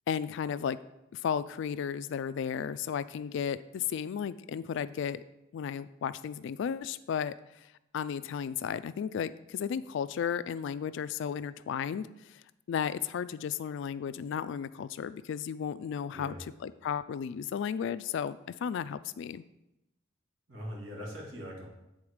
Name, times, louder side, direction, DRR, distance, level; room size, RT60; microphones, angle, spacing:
voice 1, 0.1-0.8 1.1-5.2 5.5-7.7 7.9-12.4 12.7-16.3 16.6-19.4, left 7 dB, 65° left, 15 dB, 0.3 m, -34 dB
voice 2, 16.1-16.4 20.5-21.7, equal, 75° right, -2 dB, 2.1 m, -41 dB
8.7 x 3.9 x 4.8 m, 0.92 s
head